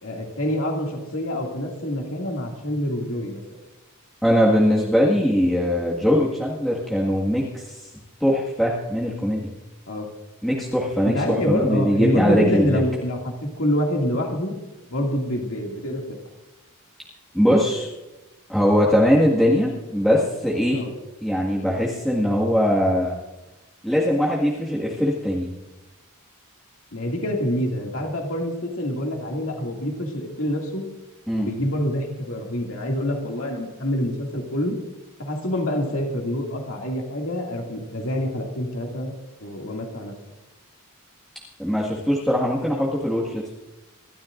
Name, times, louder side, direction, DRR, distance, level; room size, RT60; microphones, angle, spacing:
voice 1, 0.0-3.4 9.9-10.1 11.0-14.5 14.9-16.0 20.7-20.9 26.9-30.8 31.3-34.8 35.2-39.1 39.4-40.1, equal, 65° left, 0 dB, 2.4 m, -26 dB
voice 2, 4.2-7.8 8.2-9.5 10.4-12.7 17.3-17.9 18.5-20.8 21.2-23.1 23.8-25.5 31.3-31.5 41.6-43.6, equal, ahead, -6 dB, 1.9 m, -21 dB
25.5 x 13.5 x 2.6 m, 1.1 s
head